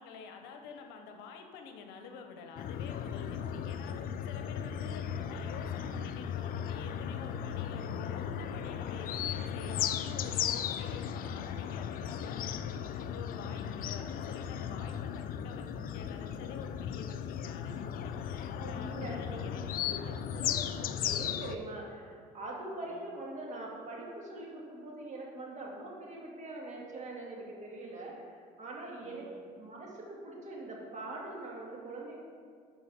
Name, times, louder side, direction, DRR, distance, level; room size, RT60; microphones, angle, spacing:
voice 1, 0.0-20.7 22.9-23.1 29.0-29.5, left 5 dB, 75° left, 5 dB, 0.8 m, -49 dB
sound 1, 2.6-21.6, left 9 dB, 55° left, 0.4 m, -36 dB
voice 2, 18.6-19.4 19.8-20.5 20.9-29.2 29.6-32.2, right 2 dB, 40° right, -2 dB, 2.0 m, -43 dB
11.5 x 4.5 x 3.5 m, 2.1 s
supercardioid pair, 80°, 18 cm